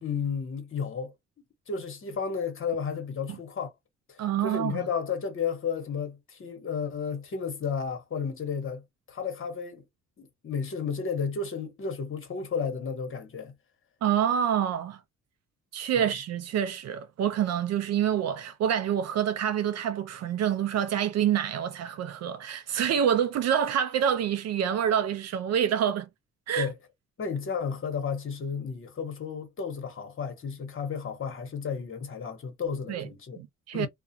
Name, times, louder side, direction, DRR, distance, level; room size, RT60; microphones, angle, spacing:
voice 1, 0.0-1.1 1.7-3.7 4.1-9.9 10.2-13.5 15.9-16.1 26.6-26.7 27.2-33.4 33.7-33.9, left 6 dB, 45° left, 1.1 m, -33 dB
voice 2, 4.2-4.8 14.0-15.0 15.7-26.1 26.5-26.7 32.9-33.1 33.4-33.9, right 9 dB, 60° right, 0.4 m, -27 dB
2.3 x 2.2 x 2.6 m
cardioid pair, 90°, 30 cm